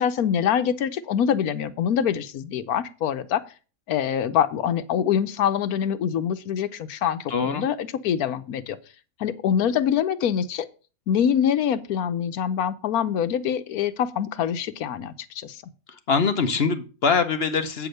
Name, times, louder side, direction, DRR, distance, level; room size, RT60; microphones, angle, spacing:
voice 1, 0.0-3.4 3.9-8.8 9.2-10.6 11.1-15.6, left 8 dB, 90° left, 12 dB, 1.2 m, -24 dB
voice 2, 7.3-7.6 16.1-17.9, left 5 dB, 50° left, 8 dB, 1.0 m, -23 dB
8.5 x 4.9 x 6.5 m, 0.35 s
omnidirectional pair, 1.5 m